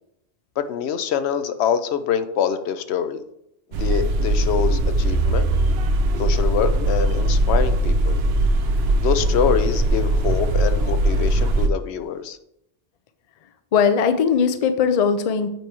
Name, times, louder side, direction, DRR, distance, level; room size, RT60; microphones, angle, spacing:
voice 1, 0.6-3.2 3.8-5.5 6.2-8.2 9.0-12.4, left 8 dB, 75° left, 10 dB, 0.8 m, -25 dB
sound 1, 3.7-11.7, right 1 dB, 70° right, 0.8 m, -20 dB
voice 2, 13.7-15.5, left 6 dB, 50° left, 9 dB, 0.5 m, -19 dB
7.9 x 2.9 x 4.6 m, 0.79 s
omnidirectional pair, 1.1 m